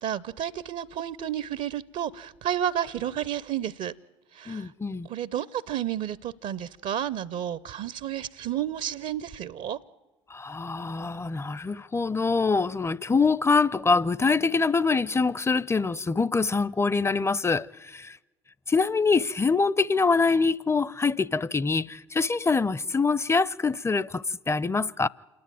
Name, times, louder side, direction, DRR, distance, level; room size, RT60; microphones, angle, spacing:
voice 1, 0.0-3.9 4.3-4.7 5.1-9.8, right 10 dB, 55° right, 0.6 m, -31 dB
voice 2, 4.5-5.1 10.3-18.2 18.7-25.1, left 4 dB, 15° left, 0.6 m, -24 dB
27.5 x 10.5 x 9.1 m
hypercardioid pair, 55°, 15 cm